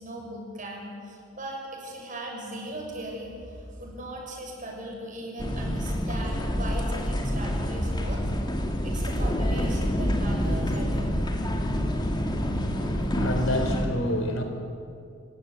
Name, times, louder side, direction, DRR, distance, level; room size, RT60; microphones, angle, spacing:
voice 1, 0.0-8.2 8.8-11.2, right 1 dB, 40° right, 0 dB, 6.6 m, -38 dB
sound 1, 5.4-13.9, equal, 20° left, 2.3 m, -27 dB
voice 2, 12.7-14.4, left 1 dB, 70° left, 5 dB, 4.1 m, -29 dB
29.5 x 15.5 x 9.4 m, 2.4 s
head